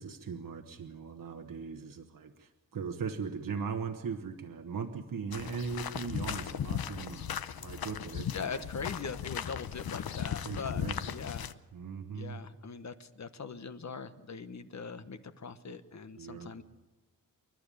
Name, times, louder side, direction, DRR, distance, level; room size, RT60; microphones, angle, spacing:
voice 1, 0.0-8.7 10.4-11.2 11.7-12.4 16.2-16.5, right 5 dB, 65° right, 5 dB, 1.3 m, -39 dB
sound 1, 5.3-11.5, left 9 dB, 90° left, 0.8 m, -37 dB
voice 2, 8.3-10.8 11.1-11.5 12.1-16.6, left 5 dB, 50° left, 11 dB, 1.2 m, -41 dB
27.5 x 12.0 x 8.5 m, 1.2 s
wide cardioid pair, 115°, 35 cm